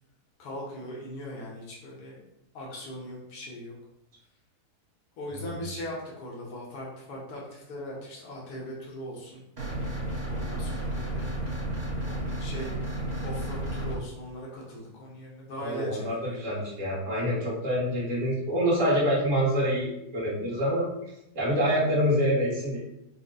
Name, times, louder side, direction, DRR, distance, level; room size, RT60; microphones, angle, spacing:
voice 1, 0.4-2.2 2.5-3.7 5.2-9.4 10.2-11.3 12.1-12.7 13.2-16.4 21.7-21.9, equal, 80° left, -4 dB, 1.5 m, -40 dB
sound 1, 9.6-14.0, right 1 dB, 30° right, 0.9 m, -32 dB
voice 2, 15.6-20.9 21.3-22.8, equal, 55° right, -7 dB, 1.7 m, -26 dB
5.0 x 2.2 x 3.8 m, 0.83 s
omnidirectional pair, 1.7 m